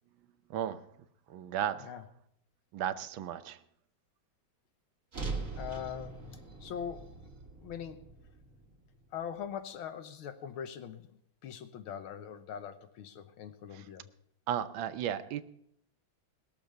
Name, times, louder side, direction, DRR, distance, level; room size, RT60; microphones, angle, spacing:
voice 1, 0.5-0.8 1.3-1.9 2.7-3.6 13.7-13.8 14.5-15.4, right 10 dB, 75° right, 11 dB, 1.6 m, -34 dB
sound 1, 5.1-9.4, right 4 dB, 40° right, 2.4 m, -42 dB
voice 2, 5.5-6.3 6.6-7.2 7.6-8.2 9.1-11.1 11.4-14.1, left 8 dB, 90° left, 10 dB, 1.8 m, -42 dB
20.5 x 7.0 x 6.6 m, 0.73 s
omnidirectional pair, 2.2 m